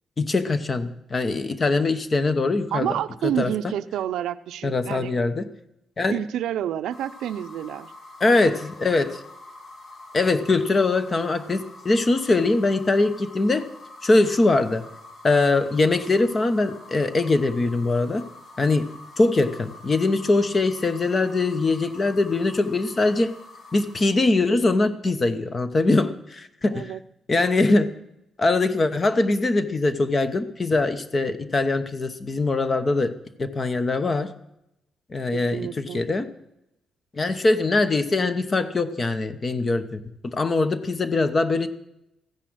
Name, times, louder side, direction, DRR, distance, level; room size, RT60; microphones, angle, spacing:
voice 1, 0.2-2.9 3.4-3.5 4.6-5.5 6.0-6.2 8.2-9.2 10.1-13.7 14.0-14.8 15.2-18.3 18.6-18.9 19.2-23.3 23.7-26.9 27.3-27.9 28.4-33.1 33.4-34.3 35.1-36.3 37.1-41.7, left 3 dB, 25° left, 11 dB, 0.9 m, -22 dB
voice 2, 2.7-5.1 6.1-7.9 26.7-27.0 35.3-36.0, right 11 dB, 90° right, 12 dB, 0.6 m, -29 dB
sound 1, 6.9-24.2, left 2 dB, 45° left, 1.8 m, -46 dB
15.0 x 10.0 x 6.3 m, 0.86 s
cardioid pair, 155°, 0 cm